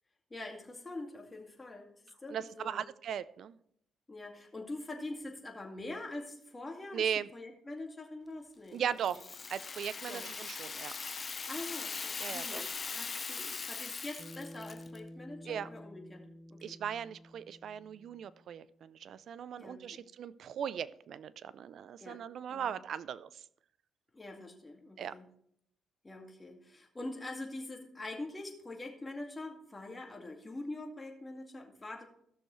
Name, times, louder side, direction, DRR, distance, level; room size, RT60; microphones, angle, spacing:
voice 1, 0.3-2.8 4.1-7.0 7.3-8.8 9.1-9.2 10.1-10.3 11.5-16.8 19.6-20.0 22.0-22.2 22.5-22.8 24.1-25.3 26.0-32.0, left 2 dB, 20° left, 2 dB, 2.1 m, -44 dB
voice 2, 2.3-3.6 6.9-7.3 8.7-9.2 9.5-10.9 12.2-12.6 15.5-15.7 16.6-23.4 25.0-25.2, right 8 dB, 65° right, 17 dB, 0.4 m, -38 dB
Rattle (instrument), 9.0-15.0, left 5 dB, 35° left, 0.7 m, -40 dB
Bass guitar, 14.2-18.6, equal, 20° right, 2.1 m, -51 dB
15.5 x 6.5 x 3.1 m, 0.69 s
cardioid pair, 90°, 0 cm